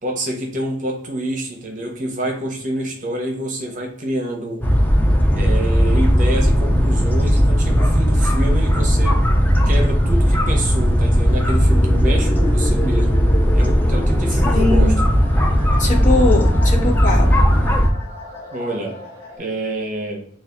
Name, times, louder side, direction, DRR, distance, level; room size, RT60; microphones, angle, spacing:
voice 1, 0.0-4.6 5.3-9.2 9.7-13.2 13.5-15.0 18.5-19.0 19.4-20.3, right 1 dB, 45° right, 1 dB, 0.7 m, -27 dB
sound 1, 4.6-17.9, equal, 10° left, 0.5 m, -16 dB
sound 2, 11.7-19.4, left 2 dB, 25° left, 1.5 m, -32 dB
voice 2, 14.4-15.0 15.8-17.4, left 2 dB, 45° left, 0 dB, 0.8 m, -21 dB
3.3 x 2.3 x 3.7 m, 0.64 s
head